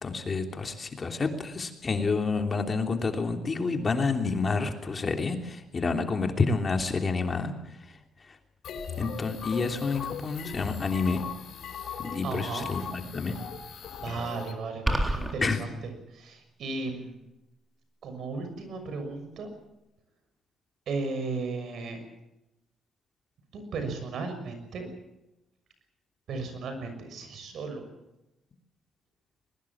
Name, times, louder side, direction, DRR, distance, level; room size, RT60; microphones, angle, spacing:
voice 1, 0.0-7.5 9.0-11.2 12.0-13.3 15.4-15.6, left 4 dB, 35° left, 5 dB, 3.1 m, -29 dB
sound 1, 8.6-14.5, left 7 dB, 65° left, 4.1 m, -39 dB
voice 2, 12.2-12.7 14.0-17.2 18.0-19.5 20.9-22.0 23.5-24.9 26.3-27.8, right 3 dB, 70° right, 7 dB, 6.3 m, -35 dB
sound 2, 14.9-15.3, right 1 dB, 15° right, 3.8 m, -26 dB
21.5 x 20.5 x 7.4 m, 0.94 s
cardioid pair, 90°, 0 cm